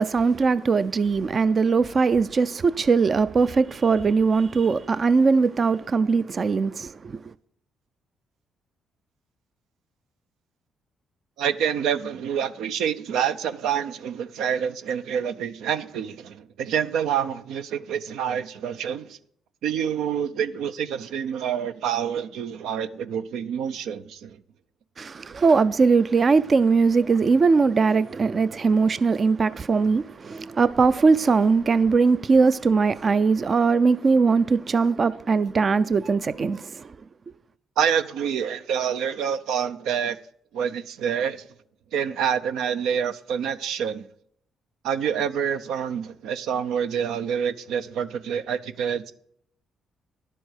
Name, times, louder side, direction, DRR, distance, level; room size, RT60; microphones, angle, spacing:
voice 1, 0.0-7.2 25.0-36.9, right 4 dB, 40° right, 0.4 m, -20 dB
voice 2, 11.4-19.2 19.6-24.4 37.8-40.2 40.5-41.4 41.9-44.1 44.8-49.1, right 8 dB, 85° right, 0.6 m, -27 dB
11.0 x 7.6 x 6.4 m
cardioid pair, 90°, 0 cm